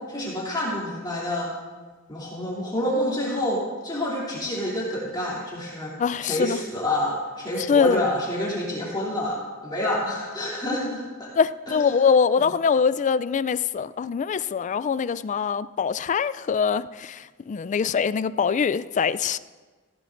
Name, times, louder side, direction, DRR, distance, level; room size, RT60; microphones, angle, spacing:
voice 1, 0.1-1.5 2.1-5.9 6.2-11.0 11.7-12.0 12.4-12.5, left 1 dB, 20° left, -6 dB, 2.9 m, -28 dB
voice 2, 6.0-6.6 7.7-8.0 11.4-17.2 17.5-19.4, left 6 dB, 35° left, 16 dB, 0.3 m, -23 dB
17.5 x 16.0 x 2.6 m, 1.4 s
head